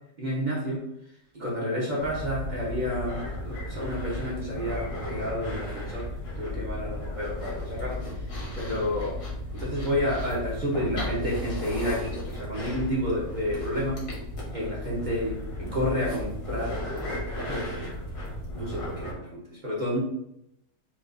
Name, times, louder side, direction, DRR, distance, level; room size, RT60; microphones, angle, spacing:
voice 1, 0.2-0.8 1.3-6.0 6.4-8.0 8.6-9.2 9.5-14.0 14.5-16.8 17.3-17.9 18.5-20.0, equal, 35° right, -5 dB, 0.7 m, -30 dB
sound 1, 2.0-19.1, left 1 dB, 65° left, 1.7 m, -35 dB
6.0 x 2.5 x 2.5 m, 0.79 s
omnidirectional pair, 1.8 m